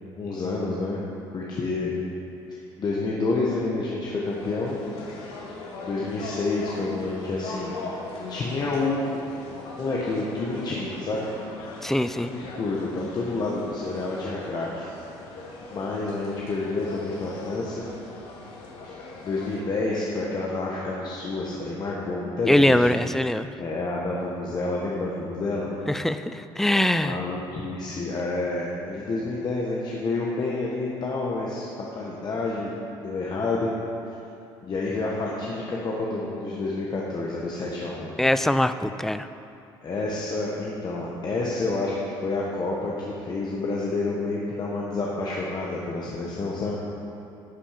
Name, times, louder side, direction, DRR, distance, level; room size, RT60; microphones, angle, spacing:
voice 1, 0.2-1.0 1.3-1.9 2.8-4.8 5.8-7.7 8.3-9.2 9.8-11.3 12.1-14.9 15.7-17.8 19.2-22.9 23.6-25.7 27.0-31.7 31.9-33.7 34.6-38.2 39.8-46.8, left 3 dB, 45° left, -4 dB, 1.2 m, -29 dB
sound 1, 4.2-19.6, left 3 dB, 85° left, 1.4 m, -40 dB
voice 2, 11.8-12.3 22.5-23.5 25.9-27.2 38.2-39.3, left 1 dB, 5° left, 11 dB, 0.3 m, -22 dB
11.0 x 5.4 x 5.1 m, 2.7 s
supercardioid pair, 90°, 10 cm